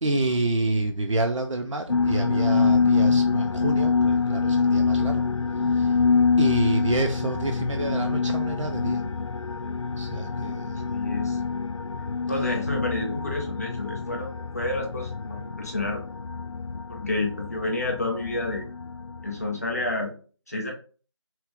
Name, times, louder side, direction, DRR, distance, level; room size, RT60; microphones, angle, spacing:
voice 1, 0.0-5.2 5.7-6.0 6.4-9.0 10.0-10.9, right 2 dB, 75° right, 0.7 m, -28 dB
sound 1, 1.9-20.0, left 5 dB, 70° left, 0.4 m, -25 dB
voice 2, 10.4-11.4 12.3-16.1 16.9-18.7 19.2-20.1 20.5-20.7, left 2 dB, 30° left, 1.0 m, -30 dB
6.0 x 2.4 x 3.5 m
figure-of-eight pair, 175°, 16 cm